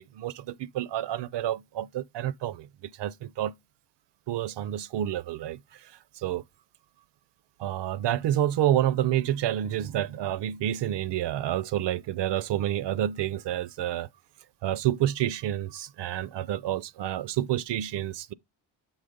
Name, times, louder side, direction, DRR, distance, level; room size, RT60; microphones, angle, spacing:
voice 1, 0.0-2.7 2.9-3.5 4.3-6.4 7.6-14.1 14.6-18.3, right 12 dB, 65° right, 0.5 m, -29 dB
7.3 x 4.0 x 4.9 m
cardioid pair, 120°, 47 cm